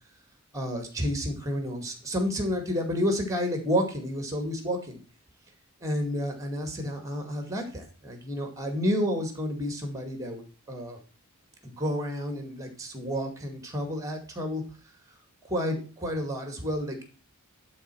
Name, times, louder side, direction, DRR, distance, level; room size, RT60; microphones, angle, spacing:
voice 1, 0.5-5.0 5.8-11.0 11.6-14.6 15.5-17.0, equal, 15° right, 5 dB, 2.2 m, -30 dB
11.5 x 4.3 x 6.1 m, 0.37 s
head